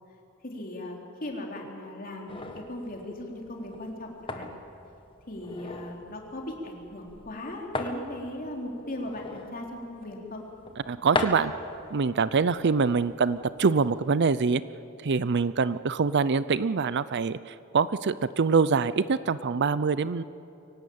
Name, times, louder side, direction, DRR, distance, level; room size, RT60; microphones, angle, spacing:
voice 1, 0.4-4.4 5.3-10.4, left 1 dB, 40° left, 0 dB, 3.7 m, -38 dB
sound 1, 2.3-14.1, left 2 dB, 25° left, 1.6 m, -39 dB
voice 2, 10.9-11.5 11.9-14.6 15.0-20.2, right 5 dB, 50° right, 16 dB, 0.5 m, -25 dB
23.5 x 17.5 x 8.7 m, 2.8 s
head